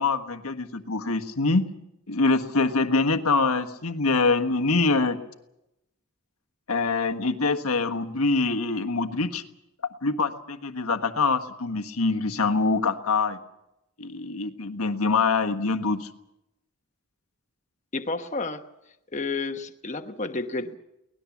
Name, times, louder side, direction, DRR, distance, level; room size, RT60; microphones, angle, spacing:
voice 1, 0.0-1.7 2.1-5.2 6.7-9.4 10.0-13.4 14.0-16.1, left 3 dB, 90° left, 7 dB, 1.5 m, -24 dB
voice 2, 17.9-18.6 19.1-20.8, left 3 dB, 35° left, 6 dB, 1.1 m, -31 dB
24.0 x 19.0 x 7.3 m, 0.87 s
head